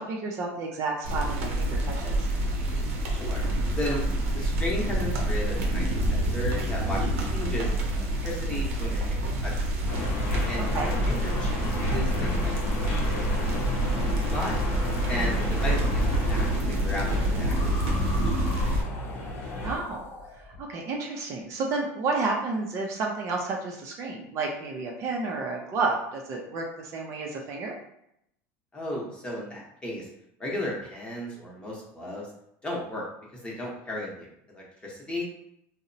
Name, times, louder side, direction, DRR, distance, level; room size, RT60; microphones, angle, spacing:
voice 1, 0.0-2.3 10.7-10.9 15.2-15.4 19.6-20.0 20.3-27.7, right 3 dB, 45° right, 0 dB, 0.5 m, -31 dB
sound 1, 1.0-18.8, right 1 dB, 90° right, 0.6 m, -27 dB
voice 2, 3.1-4.0 4.3-9.7 10.5-14.6 15.1-18.3 18.6-18.8 28.7-30.1 30.4-32.3 32.6-33.1 33.3-34.3 34.5-35.2, left 1 dB, 15° left, -4 dB, 0.8 m, -35 dB
sound 2, 9.9-19.8, left 2 dB, 85° left, 0.7 m, -33 dB
sound 3, 17.4-20.6, left 2 dB, 30° left, 0.4 m, -40 dB
2.7 x 2.0 x 2.6 m, 0.76 s
supercardioid pair, 125°, 7 cm